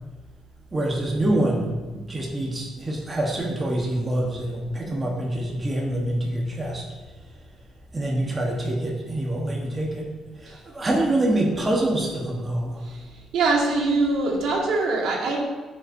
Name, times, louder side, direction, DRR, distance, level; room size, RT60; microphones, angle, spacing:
voice 1, 0.7-6.8 7.9-10.1 10.4-12.8, right 1 dB, 15° right, -2 dB, 1.1 m, -25 dB
voice 2, 13.3-15.4, right 3 dB, 75° right, -1 dB, 1.8 m, -23 dB
14.0 x 5.4 x 2.6 m, 1.3 s
cardioid pair, 160°, 0 cm